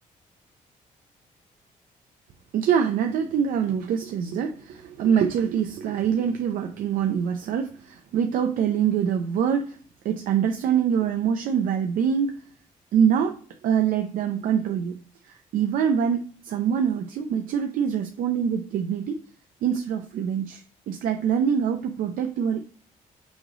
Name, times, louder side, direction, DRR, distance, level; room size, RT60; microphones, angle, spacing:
voice 1, 2.5-9.8 10.0-12.4 12.9-13.4 13.6-15.0 15.5-19.2 19.6-22.6, right 8 dB, 80° right, 5 dB, 0.6 m, -24 dB
6.3 x 3.1 x 4.9 m, 0.43 s
cardioid pair, 125°, 14 cm